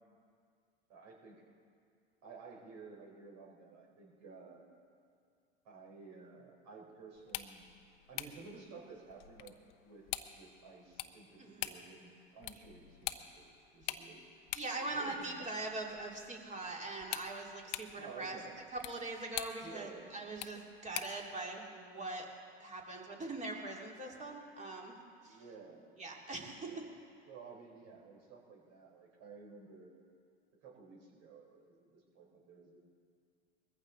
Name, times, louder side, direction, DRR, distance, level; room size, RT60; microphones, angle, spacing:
voice 1, 0.9-1.4 2.2-4.6 5.6-7.6 8.1-9.5 9.8-14.3 14.7-15.3 17.9-18.6 19.6-20.1 25.3-25.9 26.5-26.8 27.3-29.9 30.6-32.8, right 4 dB, 55° right, -1 dB, 4.5 m, -53 dB
sound 1, 7.1-21.3, left 14 dB, 65° left, 0.9 m, -47 dB
voice 2, 11.4-11.7 14.5-18.4 18.7-22.3 22.6-25.0 25.2-25.4 26.0-26.7, right 2 dB, 20° right, -1 dB, 2.9 m, -42 dB
21.5 x 15.0 x 4.0 m, 2.2 s
hypercardioid pair, 95°, 32 cm